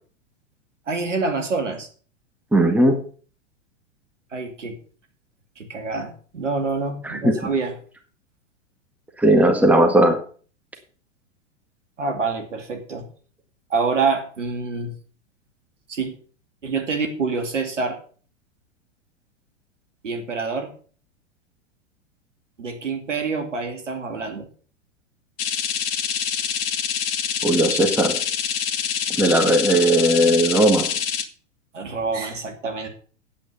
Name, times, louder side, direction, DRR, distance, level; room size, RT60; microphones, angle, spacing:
voice 1, 0.9-1.9 4.3-4.8 5.6-7.8 12.0-13.1 13.7-14.9 15.9-16.1 16.6-18.0 20.0-20.7 22.6-24.5 31.7-32.9, right 4 dB, 75° right, 5 dB, 2.6 m, -26 dB
voice 2, 2.5-3.0 7.0-7.3 9.2-10.2 27.4-28.2 29.2-30.9, right 1 dB, 5° right, 4 dB, 1.7 m, -17 dB
sound 1, 25.4-31.2, left 8 dB, 50° left, 1.6 m, -26 dB
9.1 x 8.5 x 5.7 m, 0.43 s
figure-of-eight pair, 100°, 37 cm